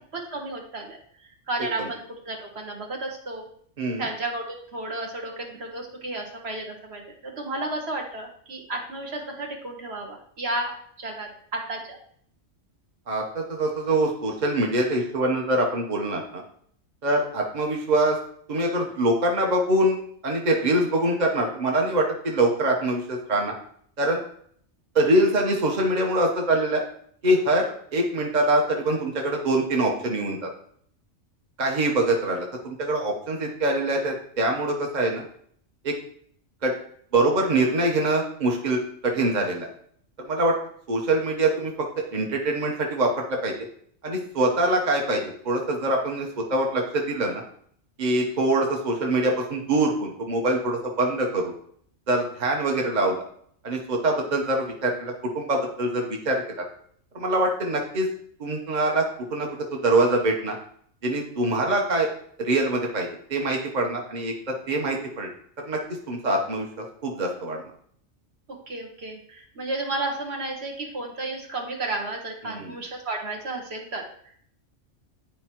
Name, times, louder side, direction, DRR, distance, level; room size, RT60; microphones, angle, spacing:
voice 1, 0.3-3.5 4.0-12.0 68.5-74.4, right 2 dB, 60° right, 1 dB, 1.4 m, -33 dB
voice 2, 13.1-16.4 17.0-18.2 18.5-23.5 24.0-24.2 24.9-26.8 27.2-30.5 31.6-35.2 35.8-35.9 36.6-36.7 37.1-39.7 40.2-40.5 40.9-43.5 44.0-47.4 48.0-51.5 52.1-53.2 53.6-56.6 57.1-58.1 58.4-59.0 59.3-60.6 61.0-62.1 62.4-65.3 65.7-65.8 66.1-67.6 72.4-72.7, right 1 dB, 40° right, 0 dB, 1.1 m, -24 dB
10.5 x 4.5 x 3.0 m, 0.62 s
omnidirectional pair, 1.2 m